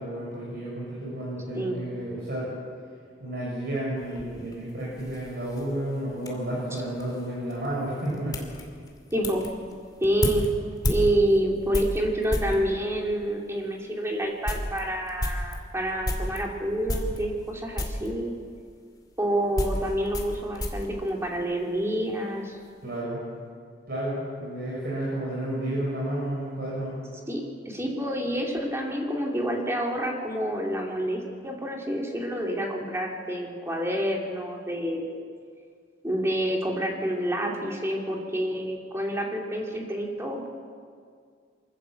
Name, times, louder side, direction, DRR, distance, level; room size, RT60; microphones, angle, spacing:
voice 1, 0.0-2.5 3.2-8.4 22.8-23.2 23.9-26.9, right 1 dB, 55° right, -7 dB, 6.6 m, -31 dB
sound 1, 4.0-12.6 13.4-13.5 13.9-14.0 14.3-16.4 16.9-17.5 17.8-18.1 19.0-21.9 22.1-22.7, left 1 dB, 20° left, 2.5 m, -33 dB
voice 2, 9.1-9.4 10.0-10.5 10.9-18.4 19.2-22.6 27.3-35.2 36.0-40.5, right 1 dB, 15° right, 0 dB, 2.7 m, -28 dB
24.0 x 14.0 x 8.3 m, 2.1 s
head